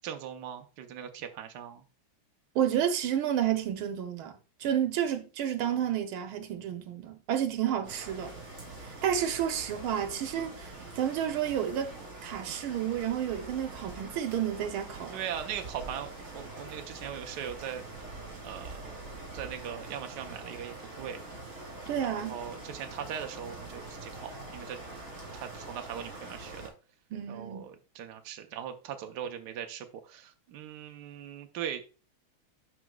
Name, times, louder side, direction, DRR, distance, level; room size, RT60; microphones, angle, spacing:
voice 1, 0.0-1.8 5.6-5.8 7.7-7.8 15.1-17.9 18.4-21.2 22.0-24.8 25.3-26.6 27.3-31.8, right 9 dB, 65° right, 1.3 m, -40 dB
voice 2, 2.5-8.3 9.0-11.9 12.2-15.2 21.9-22.4 27.1-27.7, right 9 dB, 85° right, 1.7 m, -31 dB
sound 1, 7.8-26.7, right 2 dB, 40° right, 3.7 m, -44 dB
12.0 x 4.9 x 2.3 m
omnidirectional pair, 2.2 m